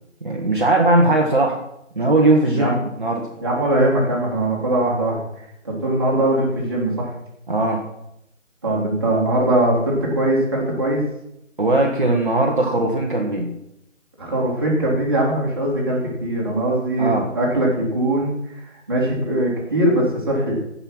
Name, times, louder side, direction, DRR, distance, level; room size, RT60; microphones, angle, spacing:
voice 1, 0.2-1.6 1.9-3.3 7.5-7.8 11.6-13.5 17.0-17.3, right 2 dB, 40° right, -1 dB, 1.3 m, -19 dB
voice 2, 2.5-2.8 3.4-5.2 5.6-7.1 8.6-11.0 14.2-18.3 18.9-20.6, right 1 dB, 20° right, -5 dB, 2.0 m, -21 dB
15.0 x 5.6 x 5.9 m, 0.79 s
figure-of-eight pair, 175°, 38 cm